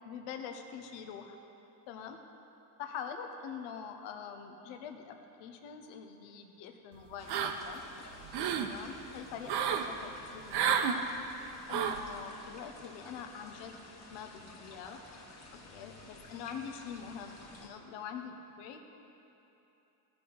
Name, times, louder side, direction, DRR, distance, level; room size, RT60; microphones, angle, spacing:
voice 1, 0.0-1.4 1.9-2.2 2.8-7.8 8.6-11.1 11.7-13.8 14.1-15.0 15.7-18.9, left 7 dB, 85° left, 5 dB, 1.0 m, -44 dB
sound 1, 7.2-17.7, left 2 dB, 40° left, 1.8 m, -52 dB
sound 2, 7.3-7.8 8.2-8.7 9.5-9.9 10.5-11.0 11.7-12.1, right 8 dB, 65° right, 0.8 m, -30 dB
16.5 x 5.9 x 3.9 m, 3.0 s
cardioid pair, 120°, 43 cm